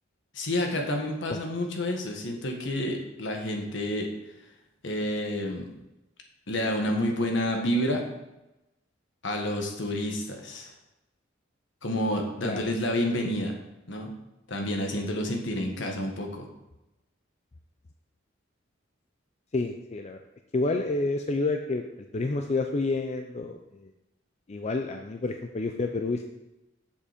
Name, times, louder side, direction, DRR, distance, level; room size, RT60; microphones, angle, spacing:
voice 1, 0.3-4.1 4.8-5.7 6.5-8.0 9.2-10.7 11.8-13.5 13.9-14.1 14.5-16.4, left 1 dB, 65° left, 2 dB, 1.5 m, -29 dB
voice 2, 19.5-20.2 20.5-21.9 22.1-23.9 24.5-26.2, left 3 dB, 35° left, 5 dB, 0.5 m, -29 dB
7.5 x 6.9 x 5.0 m, 0.96 s
head